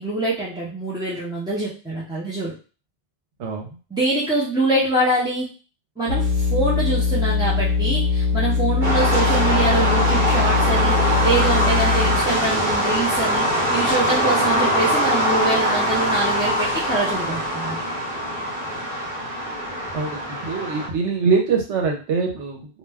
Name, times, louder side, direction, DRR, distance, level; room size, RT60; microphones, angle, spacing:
voice 1, 0.0-2.5 3.9-5.5 6.0-17.8, right 2 dB, 5° right, -8 dB, 0.3 m, -24 dB
sound 1, 6.1-12.5, left 5 dB, 65° left, 0.7 m, -21 dB
sound 2, 8.8-20.9, equal, 45° right, 0.9 m, -22 dB
voice 2, 20.4-22.7, right 5 dB, 75° right, 1 dB, 1.0 m, -23 dB
2.3 x 2.1 x 3.3 m, 0.36 s
omnidirectional pair, 1.2 m